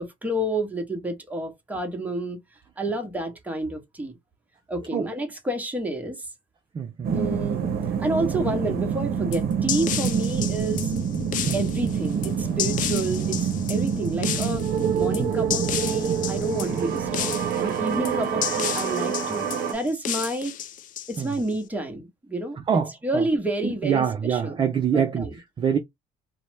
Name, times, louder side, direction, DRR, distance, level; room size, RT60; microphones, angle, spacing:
voice 1, 0.2-2.4 2.8-4.2 4.7-6.3 7.1-7.6 8.0-10.9 11.5-14.7 14.9-20.6 21.1-24.6 24.9-25.4, right 1 dB, 10° right, 0.9 m, -29 dB
voice 2, 6.7-7.2 11.5-11.6 21.2-21.3 22.7-23.2 23.6-25.3 25.6-25.8, right 7 dB, 30° right, 0.4 m, -24 dB
sound 1, 7.0-19.7, right 7 dB, 65° right, 0.7 m, -26 dB
sound 2, 9.3-21.5, left 10 dB, 50° left, 0.4 m, -32 dB
2.7 x 2.1 x 3.2 m
cardioid pair, 110°, 17 cm